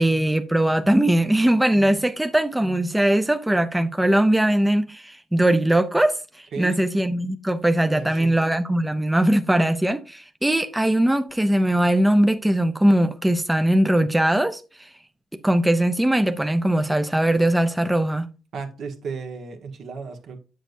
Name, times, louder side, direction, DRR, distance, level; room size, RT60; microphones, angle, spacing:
voice 1, 0.0-14.9 15.4-18.3, right 1 dB, 10° right, 0.5 m, -20 dB
voice 2, 7.9-8.3 18.5-20.4, right 5 dB, 65° right, 1.3 m, -35 dB
7.9 x 6.4 x 2.6 m
cardioid pair, 90°, 0 cm